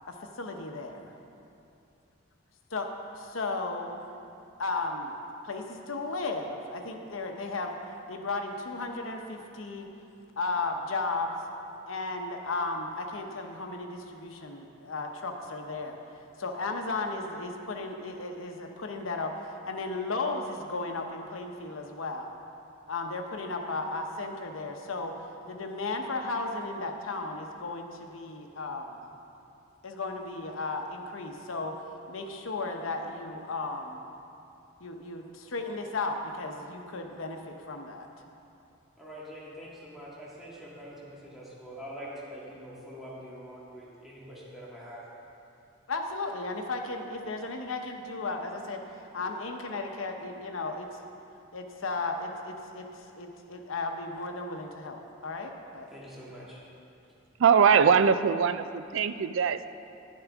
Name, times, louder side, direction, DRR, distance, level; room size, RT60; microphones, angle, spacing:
voice 1, 0.1-1.1 2.7-3.9 4.6-5.2 5.4-7.8 8.1-9.9 10.4-11.4 11.9-16.0 16.4-19.3 19.7-22.3 22.9-25.2 25.5-29.1 29.8-31.8 32.1-34.0 34.8-38.1 45.9-50.9 51.5-55.9, left 3 dB, 80° left, 4 dB, 0.9 m, -35 dB
voice 2, 39.0-45.0 55.9-56.6, equal, ahead, -8 dB, 1.8 m, -44 dB
voice 3, 57.4-59.7, right 6 dB, 70° right, 12 dB, 0.3 m, -22 dB
11.0 x 10.5 x 3.6 m, 2.7 s
head